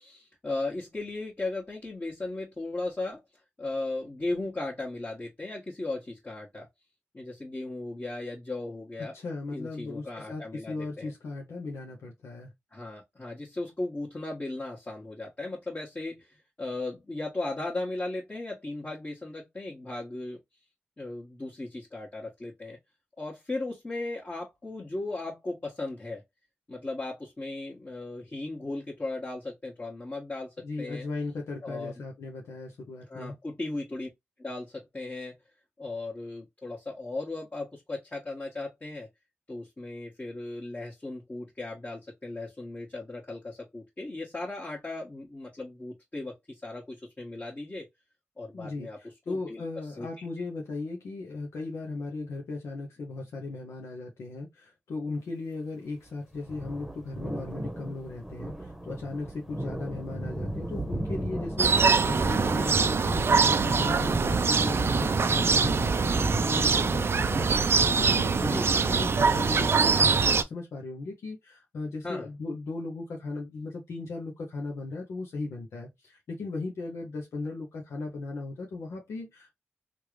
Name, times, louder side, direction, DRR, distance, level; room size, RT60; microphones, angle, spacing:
voice 1, 0.0-3.2 3.6-6.7 7.1-9.1 9.5-11.1 12.7-20.4 21.0-22.8 23.2-26.2 26.7-31.0 31.6-31.9 33.1-34.1 34.4-35.4 35.8-39.1 39.5-47.9 48.4-49.0 49.3-49.7 50.0-50.1 68.4-68.7 72.0-72.3, left 2 dB, 35° left, 1.3 m, -36 dB
voice 2, 9.1-12.5 30.6-33.4 48.5-79.6, left 3 dB, 85° left, 0.7 m, -37 dB
sound 1, 56.3-70.2, right 1 dB, 5° right, 1.0 m, -35 dB
sound 2, 61.6-70.4, right 5 dB, 60° right, 0.4 m, -24 dB
3.1 x 2.5 x 3.1 m
cardioid pair, 45°, 5 cm